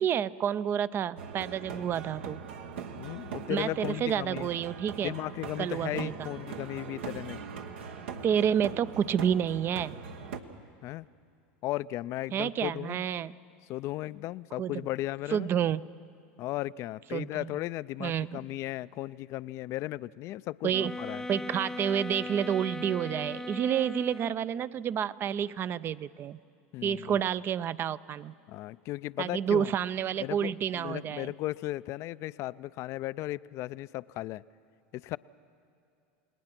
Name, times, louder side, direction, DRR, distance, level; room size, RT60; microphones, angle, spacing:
voice 1, 0.0-2.4 3.5-5.2 5.6-6.3 8.2-10.0 12.3-13.4 14.6-14.8 15.3-15.9 17.1-17.5 18.0-18.5 20.6-20.9 21.3-26.4 26.8-28.3 29.2-31.3, right 9 dB, 35° right, 18 dB, 0.5 m, -29 dB
sound 1, 1.2-10.4, right 6 dB, 80° right, 1.3 m, -41 dB
voice 2, 3.0-4.5 5.0-7.4 10.8-11.1 11.6-13.0 13.7-15.5 16.4-21.2 26.7-27.2 28.5-29.7 30.2-34.4 34.9-35.2, left 16 dB, 50° left, 18 dB, 0.4 m, -36 dB
sound 2, 20.7-24.6, left 2 dB, 5° left, 0.7 m, -39 dB
28.5 x 19.5 x 6.0 m, 2.6 s
hypercardioid pair, 100°, 6 cm